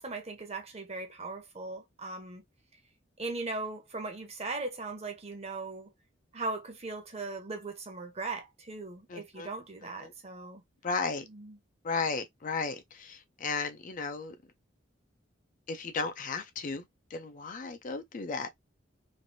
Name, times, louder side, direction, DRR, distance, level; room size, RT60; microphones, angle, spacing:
voice 1, 0.0-2.4 3.2-5.9 6.3-10.6 11.3-11.6, right 3 dB, 35° right, 0.8 m, -38 dB
voice 2, 9.1-9.5 10.0-10.1 10.8-11.2 11.8-14.4 15.7-16.9 17.1-18.5, left 4 dB, 40° left, 0.4 m, -34 dB
3.2 x 2.5 x 2.6 m
head